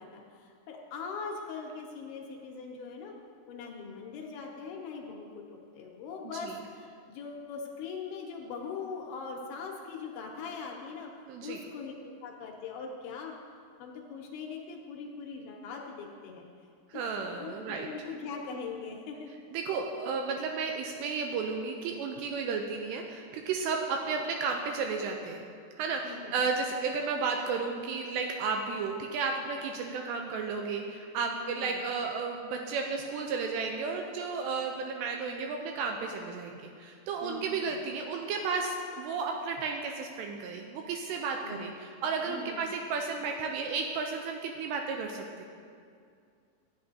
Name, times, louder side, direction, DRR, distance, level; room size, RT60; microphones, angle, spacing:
voice 1, 0.0-3.1 3.5-11.1 11.4-11.9 12.2-13.3 13.8-16.4 16.9-19.3 26.0-26.3 31.3-31.8 37.2-37.8 41.4-41.7 42.2-42.7, left 5 dB, 75° left, 0 dB, 2.7 m, -41 dB
voice 2, 11.3-11.6 16.9-17.9 19.5-25.5 25.8-45.4, right 4 dB, 85° right, 2 dB, 2.6 m, -33 dB
13.5 x 8.9 x 2.7 m, 2.3 s
omnidirectional pair, 5.1 m